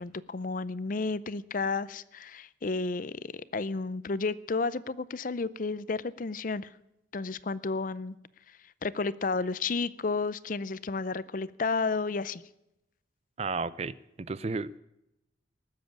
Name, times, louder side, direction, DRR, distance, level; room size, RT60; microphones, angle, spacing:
voice 1, 0.0-6.7 7.1-8.2 8.5-12.4, left 4 dB, 45° left, 0.5 m, -32 dB
voice 2, 13.4-14.8, right 4 dB, 35° right, 0.4 m, -33 dB
19.5 x 7.6 x 8.7 m
head